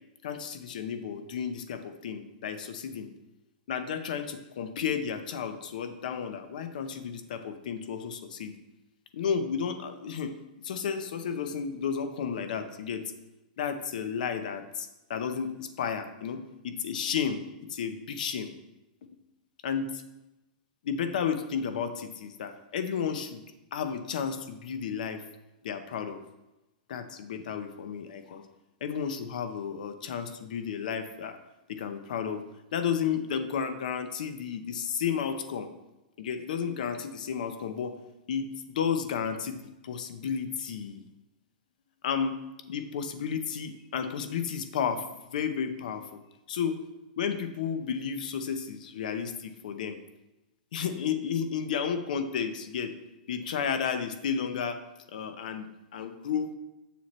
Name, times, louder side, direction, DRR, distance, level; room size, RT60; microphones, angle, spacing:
voice 1, 0.2-3.1 3.7-8.5 9.1-10.3 10.6-13.1 13.6-17.4 17.7-18.5 19.6-20.0 20.8-23.4 23.7-25.2 25.6-26.2 26.9-28.4 28.8-31.4 31.7-32.4 32.7-35.7 36.2-38.0 38.3-41.0 42.0-42.4 42.7-45.1 45.3-46.2 46.5-46.8 47.2-50.0 50.7-52.9 53.3-54.8 55.1-56.5, left 7 dB, 60° left, 9 dB, 0.7 m, -32 dB
7.4 x 6.9 x 3.1 m, 0.98 s
supercardioid pair, 170°, 5 cm